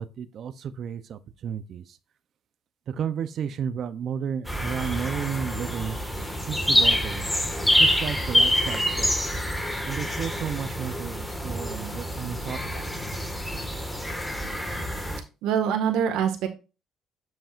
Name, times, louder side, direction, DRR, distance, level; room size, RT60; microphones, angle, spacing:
voice 1, 0.0-1.8 2.9-6.0 6.5-7.3 7.8-9.1 9.8-12.9, right 8 dB, 55° right, 0.7 m, -32 dB
sound 1, 4.5-15.2, equal, 5° left, 1.7 m, -26 dB
voice 2, 15.4-16.5, right 8 dB, 80° right, 1.7 m, -24 dB
8.0 x 7.3 x 2.5 m
cardioid pair, 110°, 0 cm